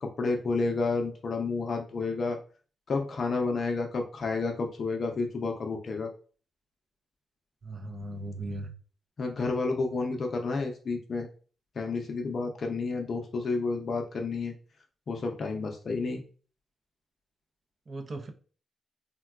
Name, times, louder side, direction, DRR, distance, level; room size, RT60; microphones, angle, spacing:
voice 1, 0.0-2.4 2.9-6.1 9.2-11.3 11.8-14.5 15.1-16.2, left 3 dB, 50° left, 0.5 m, -30 dB
voice 2, 7.6-8.7 17.9-18.3, right 2 dB, 45° right, 0.5 m, -37 dB
3.5 x 2.2 x 2.3 m
cardioid pair, 95°, 0 cm